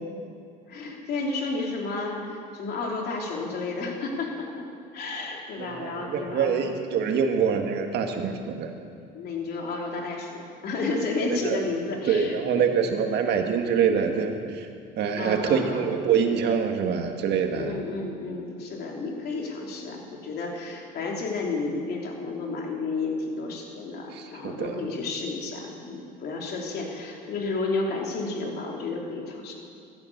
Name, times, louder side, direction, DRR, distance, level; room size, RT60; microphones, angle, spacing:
voice 1, 0.7-4.5 4.9-6.6 9.1-12.9 15.2-15.9 17.5-29.5, left 3 dB, 55° left, 0 dB, 3.1 m, -32 dB
voice 2, 5.6-8.7 11.3-11.6 12.0-14.7 15.0-17.7 24.1-24.7, right 6 dB, 60° right, 4 dB, 1.8 m, -25 dB
15.5 x 12.0 x 6.8 m, 2.4 s
cardioid pair, 125°, 19 cm